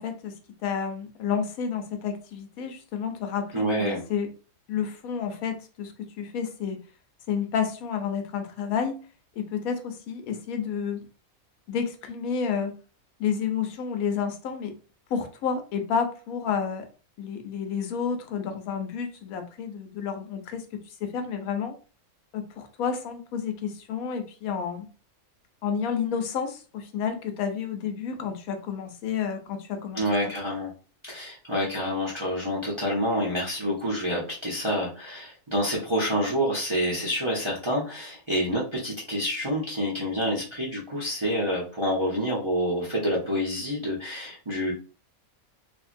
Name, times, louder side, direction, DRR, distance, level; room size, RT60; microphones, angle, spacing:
voice 1, 0.0-4.3 4.7-6.8 7.3-9.0 9.4-11.0 11.7-12.7 13.2-14.7 15.1-16.9 17.2-21.7 22.3-24.9 25.6-30.3, left 7 dB, 80° left, 6 dB, 1.0 m, -30 dB
voice 2, 3.5-4.0 29.9-30.7 31.0-44.7, equal, 35° right, -5 dB, 0.5 m, -27 dB
2.8 x 2.5 x 2.4 m, 0.36 s
omnidirectional pair, 1.5 m